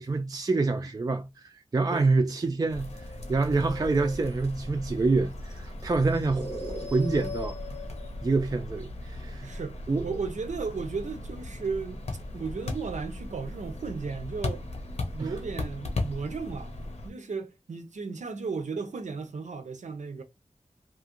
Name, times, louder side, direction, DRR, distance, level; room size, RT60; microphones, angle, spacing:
voice 1, 0.0-2.9 3.3-7.6 8.2-9.6 9.9-10.1 15.2-15.3, right 3 dB, 30° right, 0.3 m, -27 dB
sound 1, 2.7-17.1, left 2 dB, 65° left, 0.8 m, -37 dB
voice 2, 9.4-12.0 12.3-14.7 15.1-20.2, right 4 dB, 85° right, 0.6 m, -35 dB
2.8 x 2.4 x 2.9 m
wide cardioid pair, 80°, 12 cm